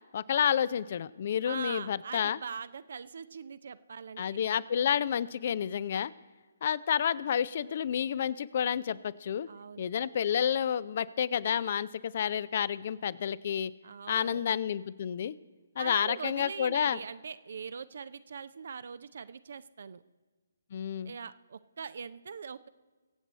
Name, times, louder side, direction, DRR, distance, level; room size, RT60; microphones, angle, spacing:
voice 1, 0.1-2.4 4.2-6.1 6.6-9.5 9.8-13.7 14.1-15.3 15.8-17.0 20.7-21.1, left 8 dB, 45° left, 20 dB, 0.5 m, -30 dB
voice 2, 1.5-4.4 9.5-9.9 13.8-14.5 15.8-20.0 21.0-22.7, right 6 dB, 55° right, 14 dB, 0.5 m, -42 dB
24.0 x 8.0 x 4.2 m, 1.4 s
figure-of-eight pair, 135°, 0 cm